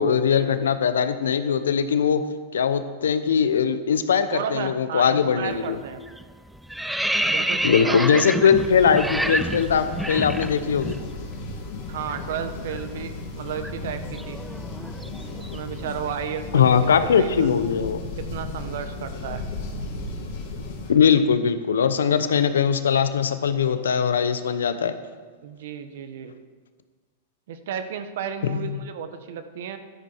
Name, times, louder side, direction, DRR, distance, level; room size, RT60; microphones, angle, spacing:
voice 1, 0.0-2.2 2.5-5.8 7.6-11.0 16.5-18.0 20.9-24.9 28.5-28.8, left 7 dB, 90° left, 11 dB, 0.9 m, -21 dB
voice 2, 4.3-6.0 7.2-8.0 11.9-14.4 15.4-17.5 18.2-19.4 25.4-26.3 27.5-29.8, right 8 dB, 70° right, 9 dB, 1.2 m, -33 dB
sound 1, 5.5-5.8 6.1-11.0 11.3-11.5 11.8-15.8, right 1 dB, 5° right, 0.6 m, -29 dB
sound 2, 8.5-20.9, left 2 dB, 65° left, 2.8 m, -35 dB
12.5 x 11.5 x 4.6 m, 1.5 s
hypercardioid pair, 120°, 0 cm